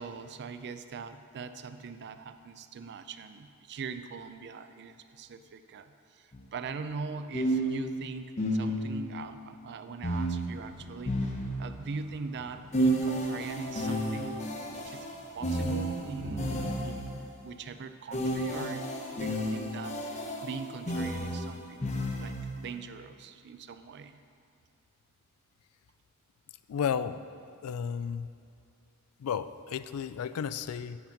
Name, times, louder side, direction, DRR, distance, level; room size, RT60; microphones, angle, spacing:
voice 1, 0.0-15.1 15.3-24.2, right 5 dB, 50° right, 10 dB, 0.4 m, -42 dB
sound 1, 6.3-6.5 7.3-9.1 10.0-11.9 12.7-17.2 18.1-22.6, right 1 dB, 30° left, 0.8 m, -32 dB
Thunder / Rain, 10.5-16.6, right 1 dB, 80° right, 2.1 m, -48 dB
voice 2, 26.7-27.2 27.6-28.3 29.2-31.0, left 7 dB, 80° left, 14 dB, 0.3 m, -33 dB
8.6 x 5.2 x 5.8 m, 2.4 s
head